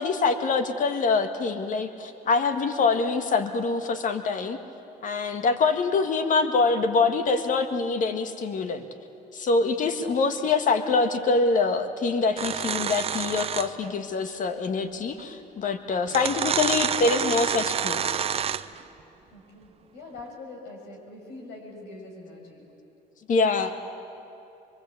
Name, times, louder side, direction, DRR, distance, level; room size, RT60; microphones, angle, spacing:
voice 1, 0.0-4.6 5.0-8.9 9.3-18.1 23.3-23.8, left 4 dB, 50° left, 8 dB, 1.7 m, -25 dB
voice 2, 9.5-9.9 19.3-22.6, left 2 dB, 80° left, 1 dB, 6.4 m, -44 dB
sound 1, 12.4-13.9 15.2-15.3 16.1-18.8, right 8 dB, 35° right, 0.7 m, -28 dB
24.0 x 23.5 x 8.5 m, 2.8 s
cardioid pair, 110°, 17 cm